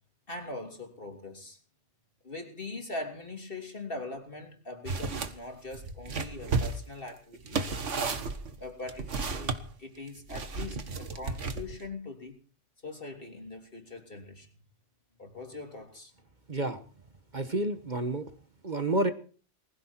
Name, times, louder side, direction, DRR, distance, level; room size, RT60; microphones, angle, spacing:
voice 1, 0.3-1.6 2.2-7.6 8.6-12.4 12.8-14.5 15.2-16.1, left 2 dB, 50° left, 4 dB, 3.4 m, -42 dB
sound 1, 4.9-5.3 5.7-9.6 10.3-11.8, right 4 dB, 85° right, 1.8 m, -33 dB
voice 2, 17.3-18.2 18.6-19.1, right 2 dB, 40° right, 9 dB, 1.3 m, -29 dB
20.5 x 15.5 x 4.5 m, 0.40 s
omnidirectional pair, 1.2 m